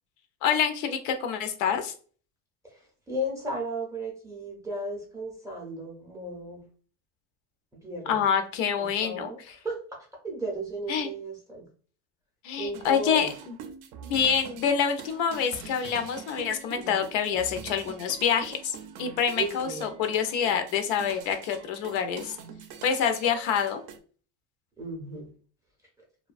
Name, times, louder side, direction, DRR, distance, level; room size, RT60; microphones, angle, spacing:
voice 1, 0.4-1.9 8.1-9.3 10.9-11.1 12.4-13.6 14.0-22.4 22.8-23.8, left 7 dB, 85° left, 7 dB, 0.6 m, -27 dB
voice 2, 3.1-6.7 7.8-8.2 8.8-9.4 9.6-11.7 12.6-13.3 16.8-17.0 19.4-20.0 24.8-25.3, right 1 dB, 10° right, -1 dB, 0.5 m, -35 dB
sound 1, 12.7-24.0, right 7 dB, 60° right, 0.5 m, -44 dB
2.6 x 2.2 x 2.4 m, 0.42 s
cardioid pair, 155°, 37 cm